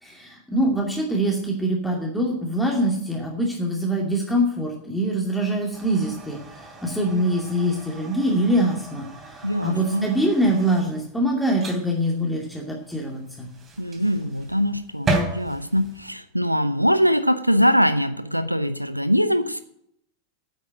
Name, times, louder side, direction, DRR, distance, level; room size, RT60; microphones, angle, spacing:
voice 1, 0.0-13.5, right 1 dB, 5° left, -1 dB, 2.5 m, -24 dB
sound 1, 5.7-16.1, right 2 dB, 20° right, 3.3 m, -34 dB
voice 2, 9.4-10.1 13.8-19.6, equal, 90° right, 14 dB, 0.7 m, -22 dB
9.8 x 8.4 x 8.9 m, 0.73 s
figure-of-eight pair, 90°, 0 cm